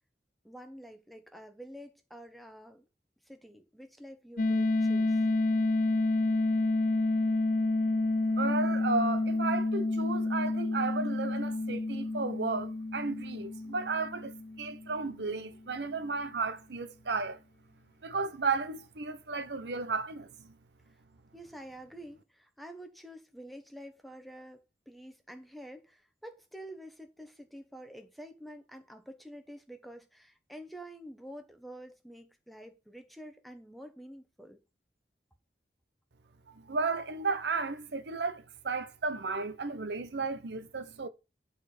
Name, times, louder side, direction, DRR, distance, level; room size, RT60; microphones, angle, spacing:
voice 1, 0.4-2.9 3.2-5.2 21.3-34.6, equal, ahead, 1.1 m, -48 dB
sound 1, 4.4-15.1, left 2 dB, 50° left, 0.6 m, -29 dB
voice 2, 8.4-17.4 18.0-20.5 36.5-41.1, right 4 dB, 80° right, 0.8 m, -34 dB
11.0 x 4.3 x 5.0 m
head